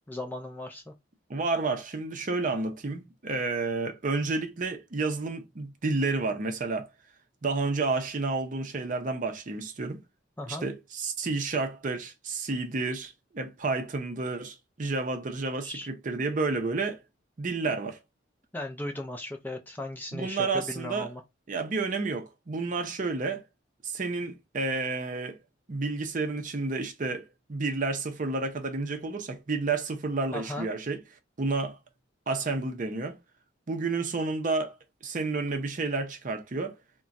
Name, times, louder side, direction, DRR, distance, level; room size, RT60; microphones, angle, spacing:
voice 1, 0.1-0.9 10.4-10.6 15.6-15.9 18.5-21.2 30.3-30.7, left 1 dB, 10° left, 0.4 m, -37 dB
voice 2, 1.3-6.9 7.4-10.0 10.5-17.0 17.4-18.0 20.1-21.1 21.5-23.4 23.8-25.4 25.7-31.0 31.4-31.8 32.3-33.2 33.7-34.8 35.0-36.8, right 3 dB, 40° right, 0.5 m, -30 dB
2.4 x 2.2 x 3.9 m
head